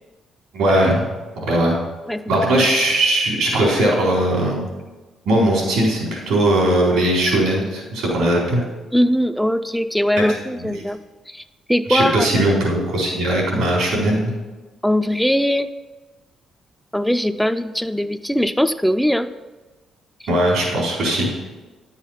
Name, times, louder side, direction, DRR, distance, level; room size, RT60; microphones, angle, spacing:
voice 1, 0.5-1.0 1.4-1.8 2.3-4.7 5.3-8.6 10.2-10.3 10.6-10.8 11.9-14.3 20.3-21.3, right 1 dB, 85° right, -3 dB, 4.1 m, -19 dB
voice 2, 8.9-11.0 11.3-11.4 11.7-12.5 14.8-15.7 16.9-19.3, equal, ahead, 9 dB, 0.4 m, -20 dB
10.5 x 7.3 x 5.8 m, 1.2 s
cardioid pair, 90°, 0 cm